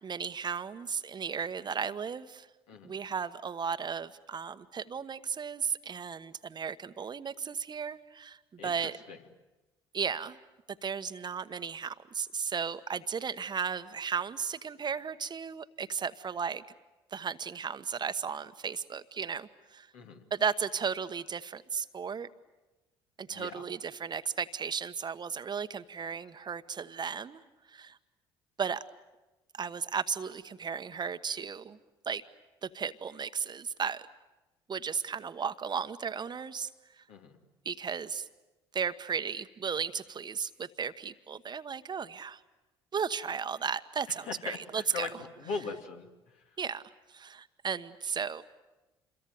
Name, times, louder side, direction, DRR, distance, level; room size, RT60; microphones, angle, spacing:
voice 1, 0.0-2.5 2.8-8.4 8.6-9.0 9.9-10.4 10.8-16.6 17.1-19.9 20.3-22.3 23.2-27.4 27.7-28.0 28.6-28.8 29.6-31.8 32.1-32.2 32.6-34.0 34.7-36.7 37.6-38.2 38.7-42.4 42.9-45.1 46.6-46.8 47.1-48.4, right 6 dB, 35° right, 11 dB, 1.2 m, -35 dB
voice 2, 23.3-23.6 37.1-37.4 44.2-46.1, left 5 dB, 65° left, 3 dB, 2.7 m, -39 dB
27.5 x 22.5 x 9.3 m, 1.1 s
figure-of-eight pair, 55°, 13 cm